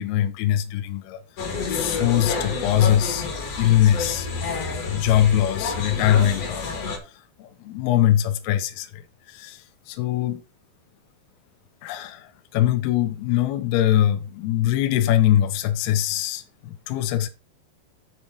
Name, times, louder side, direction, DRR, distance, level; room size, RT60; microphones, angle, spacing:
voice 1, 0.0-4.4 4.8-9.0 9.3-10.4 11.8-17.3, left 12 dB, 75° left, 2.7 m, -22 dB
sound 1, 1.4-7.0, left 4 dB, 45° left, 2.7 m, -29 dB
9.6 x 6.0 x 5.0 m
omnidirectional pair, 4.8 m